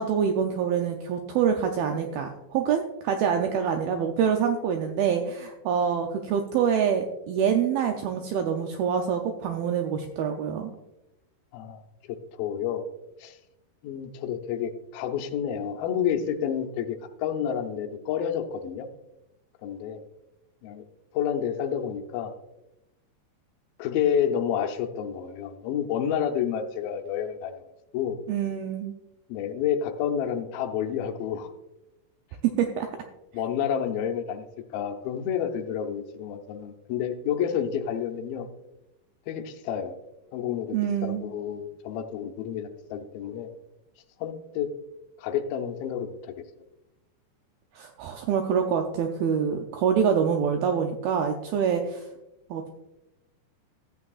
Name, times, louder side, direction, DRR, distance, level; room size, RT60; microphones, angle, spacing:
voice 1, 0.0-10.7 28.3-28.9 32.4-32.9 40.7-41.3 47.8-52.0 52.5-52.7, right 7 dB, 80° right, 4 dB, 2.2 m, -26 dB
voice 2, 12.1-12.8 13.2-13.4 13.8-18.9 19.6-20.0 20.6-20.8 21.1-22.3 23.8-27.6 27.9-28.2 29.3-31.5 33.3-34.5 34.7-38.5 39.3-40.0 40.3-40.8 41.0-43.5 44.2-44.7 45.2-46.3, left 8 dB, 80° left, 5 dB, 2.2 m, -29 dB
14.0 x 8.5 x 2.4 m, 0.93 s
omnidirectional pair, 4.9 m